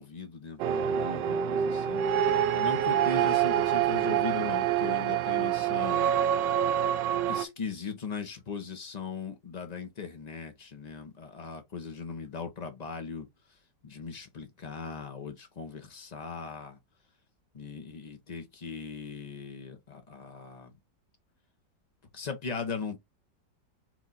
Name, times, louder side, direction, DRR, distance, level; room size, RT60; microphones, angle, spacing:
voice 1, 0.0-2.0 2.5-6.1 7.3-13.3 13.8-16.8 17.5-20.7 22.1-23.0, left 5 dB, 35° left, 0.6 m, -39 dB
sound 1, 0.6-7.4, right 10 dB, 80° right, 1.2 m, -26 dB
4.5 x 2.4 x 4.1 m
omnidirectional pair, 2.0 m